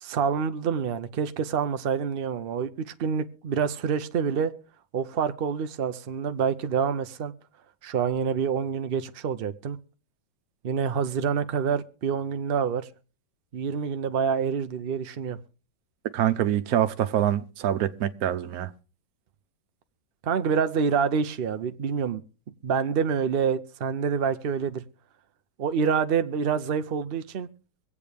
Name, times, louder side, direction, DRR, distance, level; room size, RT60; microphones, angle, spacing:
voice 1, 0.0-4.5 4.9-7.3 7.8-9.8 10.6-12.9 13.5-15.4 20.2-22.2 22.6-24.8 25.6-27.5, right 6 dB, 75° right, 0.5 m, -27 dB
voice 2, 16.1-18.7, right 11 dB, 60° right, 1.2 m, -25 dB
24.5 x 8.4 x 3.4 m
omnidirectional pair, 2.0 m